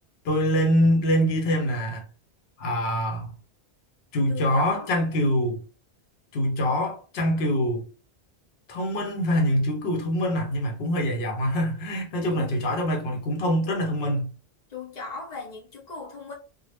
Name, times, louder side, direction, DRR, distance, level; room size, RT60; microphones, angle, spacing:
voice 1, 0.2-2.0 2.6-3.3 4.1-5.6 6.3-7.9 8.7-14.3, equal, 70° left, 0.9 m, -24 dB
voice 2, 4.3-4.9 12.3-12.5 14.7-16.3, left 4 dB, 45° left, 0.7 m, -38 dB
2.0 x 2.0 x 3.3 m
omnidirectional pair, 1.1 m